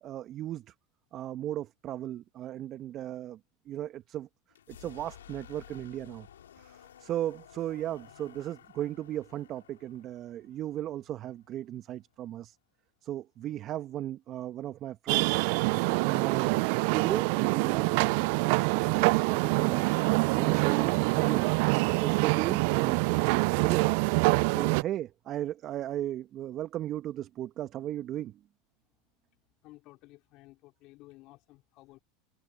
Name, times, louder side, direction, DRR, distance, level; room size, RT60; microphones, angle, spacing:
voice 1, 0.0-0.7 1.1-3.4 3.7-4.3 4.7-6.3 6.6-12.6 13.0-15.4 15.8-16.6 16.9-19.9 20.3-21.6 22.0-23.0 23.3-23.9 24.5-28.4, right 12 dB, 45° right, 1.2 m, -36 dB
sound 1, 4.5-12.2, left 10 dB, 85° left, 3.4 m, -54 dB
sound 2, 15.1-24.8, right 28 dB, 65° right, 0.5 m, -25 dB
voice 2, 29.6-32.0, left 20 dB, 55° left, 4.6 m, -54 dB
hypercardioid pair, 85°, 0 cm